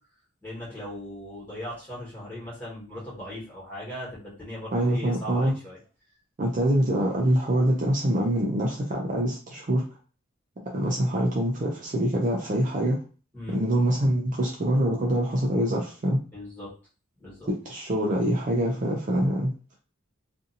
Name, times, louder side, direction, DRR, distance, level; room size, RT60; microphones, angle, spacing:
voice 1, 0.4-5.8 13.3-13.6 16.3-16.7 17.2-17.5, left 1 dB, 10° left, -9 dB, 1.4 m, -38 dB
voice 2, 4.7-5.5 6.4-9.9 10.6-13.0 13.5-16.2 17.5-19.5, right 1 dB, 35° right, -1 dB, 0.4 m, -25 dB
2.6 x 2.5 x 2.6 m, 0.37 s
head